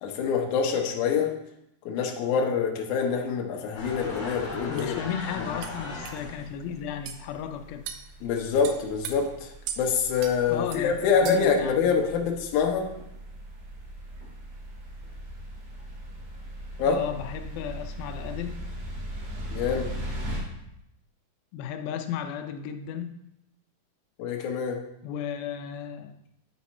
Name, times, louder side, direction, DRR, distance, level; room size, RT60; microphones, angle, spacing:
voice 1, 0.0-1.3 1.9-4.9 8.2-12.9 16.8-17.0 19.5-19.9 24.2-24.8, left 6 dB, 70° left, 1 dB, 2.1 m, -25 dB
sound 1, 3.7-20.4, equal, 65° right, 4.1 m, -40 dB
sound 2, 3.8-6.5, left 2 dB, 50° left, 2.6 m, -38 dB
sound 3, 4.2-4.3 4.8-4.9 5.6-5.8 6.0-6.2 7.1-7.2 7.9-8.1 8.6-9.1 9.7-9.8 10.2-10.4 10.7-10.8 11.2-11.6, right 9 dB, 85° right, 2.4 m, -37 dB
voice 2, 4.7-7.8 10.5-12.1 16.9-18.6 21.5-23.2 25.0-26.1, left 8 dB, 90° left, 6 dB, 2.4 m, -34 dB
9.2 x 4.2 x 4.2 m, 0.82 s
omnidirectional pair, 4.2 m